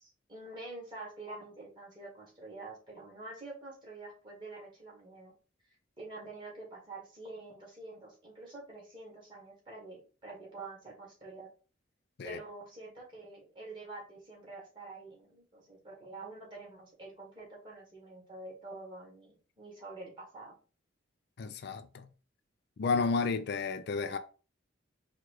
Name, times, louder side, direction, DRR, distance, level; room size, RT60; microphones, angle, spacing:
voice 1, 0.0-5.3 6.0-11.5 12.2-20.5, right 2 dB, 25° right, 2.1 m, -47 dB
voice 2, 21.4-22.1 22.8-24.2, left 4 dB, 55° left, 0.4 m, -32 dB
4.7 x 2.4 x 4.7 m
head